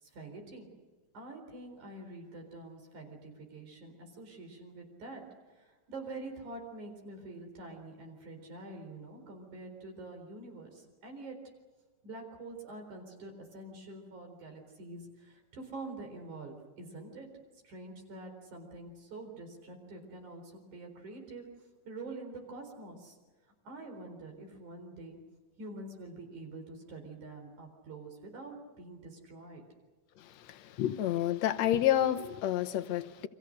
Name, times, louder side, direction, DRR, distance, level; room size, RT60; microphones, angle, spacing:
voice 1, 0.0-0.7 1.1-5.2 5.5-11.4 12.0-17.3 17.6-21.5 21.9-23.2 23.6-25.2 25.6-29.6, right 2 dB, 65° right, 5.7 m, -46 dB
voice 2, 30.5-33.3, left 12 dB, 65° left, 2.0 m, -29 dB
29.5 x 25.0 x 6.6 m
omnidirectional pair, 3.7 m